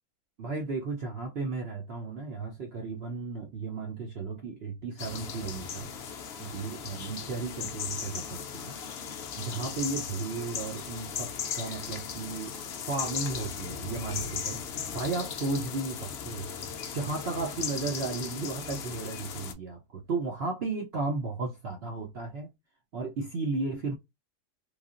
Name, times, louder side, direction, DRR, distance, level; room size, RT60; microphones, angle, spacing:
voice 1, 0.4-5.9 6.4-8.8 9.4-14.6 14.9-16.5 16.9-22.5 22.9-23.9, right 3 dB, 65° right, 0.6 m, -34 dB
sound 1, 5.0-19.5, left 7 dB, 75° left, 0.5 m, -37 dB
3.3 x 2.3 x 2.4 m
omnidirectional pair, 1.7 m